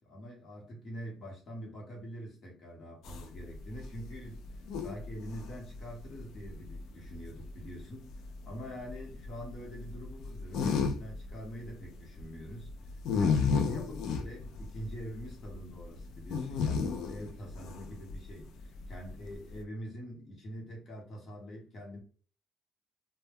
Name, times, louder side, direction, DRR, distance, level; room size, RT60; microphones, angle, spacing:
voice 1, 0.0-4.4 4.8-8.1 8.4-12.7 13.2-22.0, equal, 40° left, 0.9 m, -44 dB
sound 1, 3.0-19.6, left 5 dB, 75° left, 0.3 m, -35 dB
2.1 x 2.1 x 3.3 m
cardioid pair, 160°, 0 cm